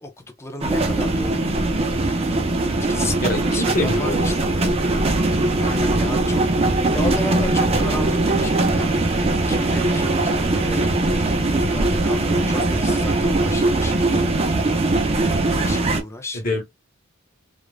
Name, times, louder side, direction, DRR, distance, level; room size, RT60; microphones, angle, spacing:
voice 1, 0.0-2.0 2.8-4.9 5.5-6.4 6.9-11.2 11.6-15.0 15.5-16.4, left 2 dB, 15° left, 0.5 m, -34 dB
sound 1, 0.6-16.0, right 2 dB, 30° right, 0.5 m, -20 dB
voice 2, 2.7-4.5 16.3-16.6, left 1 dB, 45° left, 1.0 m, -26 dB
2.4 x 2.0 x 3.2 m
head